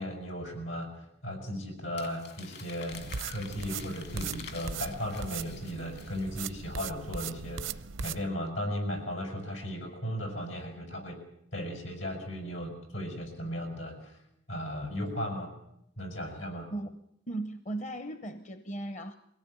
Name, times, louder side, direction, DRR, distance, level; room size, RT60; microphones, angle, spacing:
voice 1, 0.0-11.2 11.5-14.2 14.5-15.5 16.0-16.7, equal, 75° left, 5 dB, 6.6 m, -36 dB
Crumpling crinkling, 2.0-6.5, left 6 dB, 55° left, 2.5 m, -48 dB
sound 1, 2.9-8.2, right 6 dB, 85° right, 0.8 m, -39 dB
voice 2, 16.7-19.1, right 2 dB, 40° left, 10 dB, 0.9 m, -37 dB
22.5 x 17.0 x 9.1 m, 0.78 s
head